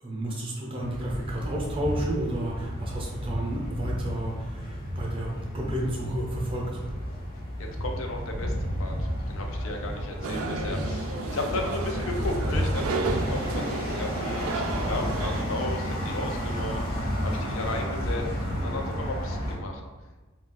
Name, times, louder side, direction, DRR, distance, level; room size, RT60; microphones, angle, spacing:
voice 1, 0.0-6.8, right 1 dB, 25° right, -2 dB, 0.6 m, -32 dB
sound 1, 0.8-19.6, equal, 50° left, 0.8 m, -31 dB
voice 2, 7.6-18.2 18.5-19.8, left 2 dB, 75° left, 2 dB, 0.5 m, -35 dB
sound 2, 10.2-15.4, right 3 dB, 85° right, 0.3 m, -32 dB
2.4 x 2.2 x 3.8 m, 1.3 s
head